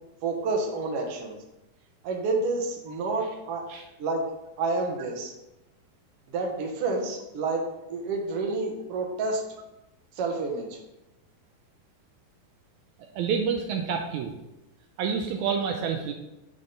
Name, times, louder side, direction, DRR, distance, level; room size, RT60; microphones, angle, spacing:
voice 1, 0.2-1.4 2.0-3.6 4.0-4.3 4.6-5.3 6.3-9.4 10.1-10.8, right 3 dB, 65° right, 1 dB, 1.5 m, -29 dB
voice 2, 13.1-14.3 15.0-16.1, right 6 dB, 90° right, 3 dB, 1.7 m, -28 dB
9.8 x 3.7 x 3.8 m, 0.93 s
omnidirectional pair, 4.1 m